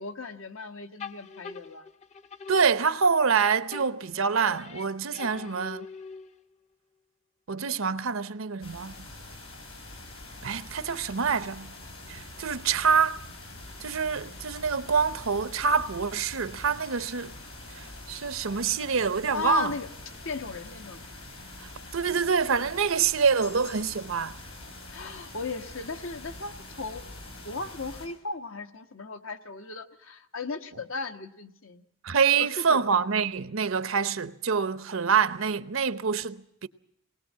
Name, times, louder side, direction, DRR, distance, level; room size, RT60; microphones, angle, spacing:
voice 1, 0.0-1.9 3.8-3.9 5.3-5.6 19.3-19.9 20.2-21.1 24.9-27.0 27.4-31.8 32.4-32.8, left 4 dB, 70° left, 1.3 m, -37 dB
sound 1, 1.0-3.4 3.7-6.6, left 4 dB, 35° left, 0.7 m, -44 dB
voice 2, 2.5-5.9 7.5-9.1 10.4-11.7 12.1-13.2 13.8-17.3 17.8-19.7 21.9-24.4 32.0-36.7, right 6 dB, 75° right, 0.8 m, -26 dB
sound 2, 8.6-28.1, left 2 dB, 90° left, 5.9 m, -44 dB
sound 3, 23.4-24.4, left 9 dB, 50° left, 2.0 m, -49 dB
20.0 x 19.0 x 7.4 m
head